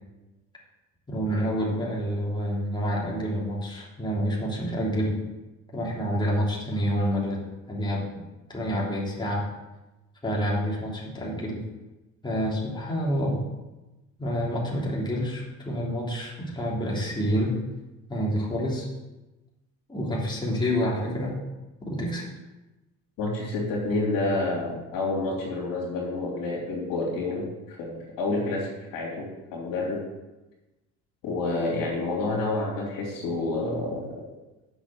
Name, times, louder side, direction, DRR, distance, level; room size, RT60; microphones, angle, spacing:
voice 1, 1.1-5.2 5.7-7.4 7.7-8.2 8.5-9.5 10.2-11.6 12.2-13.4 14.2-17.6 18.1-18.9 19.9-21.4 21.8-22.3, equal, 15° left, -4 dB, 3.1 m, -28 dB
voice 2, 23.2-30.1 31.2-34.1, left 2 dB, 70° left, -2 dB, 3.3 m, -29 dB
8.1 x 6.2 x 6.3 m, 1.0 s
supercardioid pair, 85°, 35 cm